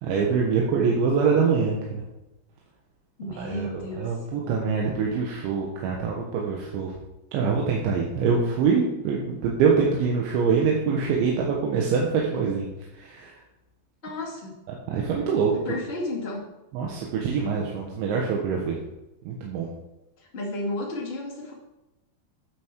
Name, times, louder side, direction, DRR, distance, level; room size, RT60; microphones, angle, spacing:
voice 1, 0.0-2.0 3.4-6.9 7.3-12.7 12.9-13.4 14.9-15.5 16.7-18.8 19.2-19.7, right 5 dB, 70° right, -1 dB, 3.2 m, -24 dB
voice 2, 3.2-4.1 14.0-14.5 15.5-16.4 20.2-21.5, left 2 dB, 90° left, -7 dB, 0.5 m, -32 dB
9.0 x 8.5 x 4.6 m, 0.99 s
omnidirectional pair, 6.0 m